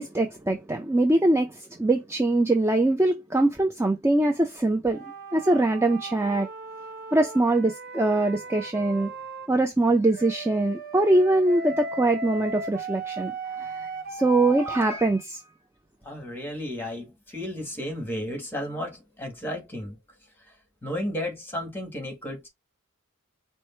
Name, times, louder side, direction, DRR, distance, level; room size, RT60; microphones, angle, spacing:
voice 1, 0.0-5.0 5.3-6.5 7.1-9.1 9.5-13.3 13.6-13.7 14.1-15.4, right 2 dB, 10° right, 0.4 m, -23 dB
sound 1, 4.9-9.5 10.1-14.9, right 3 dB, 45° right, 0.9 m, -37 dB
voice 2, 16.0-20.0 20.5-20.6 20.8-22.5, left 1 dB, 10° left, 1.7 m, -33 dB
4.8 x 2.1 x 4.3 m
head